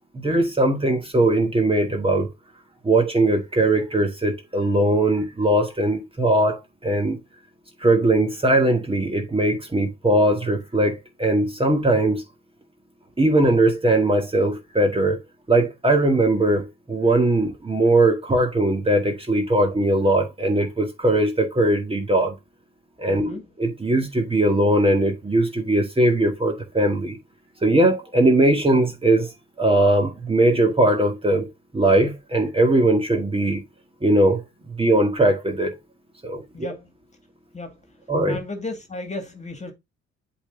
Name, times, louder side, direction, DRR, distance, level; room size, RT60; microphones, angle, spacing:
voice 1, 0.1-2.3 2.8-7.2 7.8-12.2 13.2-15.2 15.5-22.3 23.0-27.2 27.6-29.3 29.6-31.5 31.7-33.6 34.0-34.4 34.7-35.7 36.2-36.7 38.1-38.4, right 1 dB, 20° right, 1.8 m, -20 dB
voice 2, 23.1-23.5 36.5-36.9 37.5-37.8 38.3-39.7, left 2 dB, 25° left, 2.2 m, -34 dB
7.8 x 4.0 x 3.8 m
cardioid pair, 90°, 30 cm